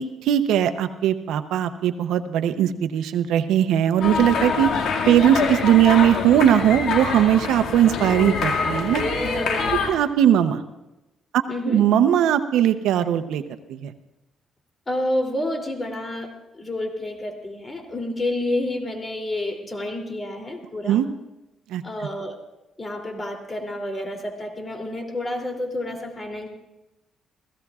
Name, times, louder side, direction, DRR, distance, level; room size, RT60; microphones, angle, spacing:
voice 1, 0.0-9.0 9.7-10.6 11.6-13.4 13.7-13.9 20.9-21.1 21.7-21.8, right 10 dB, 85° right, 10 dB, 0.7 m, -19 dB
sound 1, 4.0-9.9, left 4 dB, 75° left, 2.1 m, -25 dB
voice 2, 9.2-9.8 11.5-11.8 14.9-21.0 21.8-22.4 22.8-26.5, left 1 dB, 25° left, 2 dB, 2.9 m, -29 dB
30.0 x 16.0 x 2.4 m, 0.99 s
cardioid pair, 90°, 0 cm